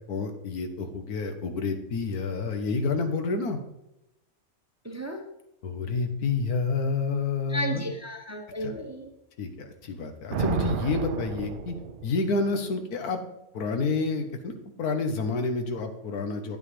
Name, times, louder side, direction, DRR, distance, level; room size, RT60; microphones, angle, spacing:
voice 1, 0.0-3.6 5.6-7.9 8.6-8.7 9.4-11.8 12.0-13.2 13.5-14.5 14.8-16.6, left 4 dB, 90° left, 6 dB, 1.6 m, -29 dB
voice 2, 4.8-5.2 7.5-9.1, equal, 15° right, 3 dB, 0.8 m, -33 dB
Thunder, 10.3-12.5, right 7 dB, 70° right, 0.5 m, -32 dB
9.2 x 8.9 x 3.3 m, 0.88 s
omnidirectional pair, 1.6 m